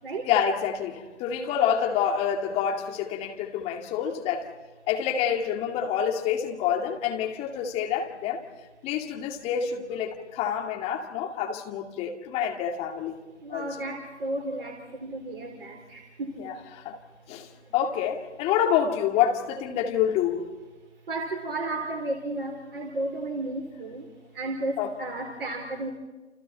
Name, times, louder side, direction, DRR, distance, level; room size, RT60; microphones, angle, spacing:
voice 1, 0.2-4.5 4.9-8.4 8.8-13.2 13.5-13.7 16.4-17.0 17.3-20.5 24.8-24.9, left 8 dB, 15° left, 3 dB, 2.3 m, -27 dB
voice 2, 13.4-16.6 21.1-24.1 24.3-25.9, right 2 dB, 50° right, 3 dB, 4.2 m, -33 dB
30.0 x 29.5 x 4.5 m, 1.2 s
figure-of-eight pair, 130°, 36 cm